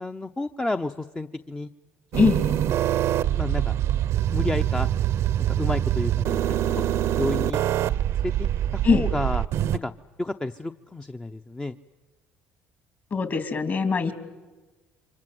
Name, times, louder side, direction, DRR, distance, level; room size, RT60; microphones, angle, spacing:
voice 1, 0.0-1.7 2.5-2.6 3.4-3.7 4.3-4.9 5.5-6.8 7.2-7.6 8.2-9.4 9.7-9.9 10.2-11.8, left 2 dB, 15° left, 7 dB, 0.8 m, -31 dB
sound 1, 2.1-9.8, right 11 dB, 65° right, 0.8 m, -24 dB
voice 2, 13.1-14.1, left 5 dB, 45° left, 9 dB, 3.1 m, -22 dB
28.0 x 24.5 x 7.8 m, 1.2 s
supercardioid pair, 70°, 5 cm